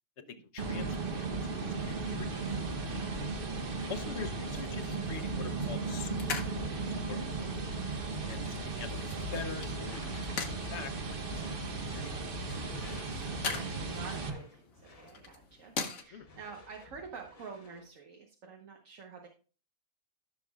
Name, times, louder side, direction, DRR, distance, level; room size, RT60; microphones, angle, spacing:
voice 1, 0.5-1.3 1.6-2.6 3.9-7.5 8.2-12.1 16.1-16.3, left 6 dB, 60° left, 9 dB, 1.0 m, -45 dB
sound 1, 0.6-14.3, right 3 dB, 45° right, 1.1 m, -36 dB
voice 2, 2.8-3.3 12.6-19.3, right 5 dB, 75° right, 1 dB, 1.5 m, -49 dB
sound 2, 4.5-16.0, left 4 dB, 85° left, 1.7 m, -44 dB
Door / Screech, 9.7-17.9, left 2 dB, 30° left, 0.9 m, -55 dB
14.0 x 6.4 x 2.3 m, 0.37 s
omnidirectional pair, 1.4 m